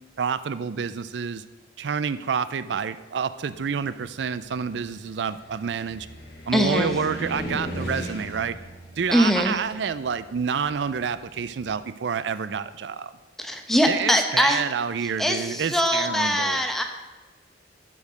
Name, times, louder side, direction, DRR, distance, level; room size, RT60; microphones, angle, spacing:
voice 1, 0.2-1.4 1.8-6.1 6.5-8.6 9.0-13.1 13.9-16.6, right 6 dB, 80° right, 14 dB, 0.4 m, -28 dB
Car, 3.5-11.7, equal, 60° left, 1.7 m, -38 dB
voice 2, 6.5-6.9 9.1-9.6 13.4-14.6 15.2-16.8, equal, ahead, 4 dB, 0.9 m, -22 dB
12.0 x 5.1 x 6.4 m, 1.2 s
head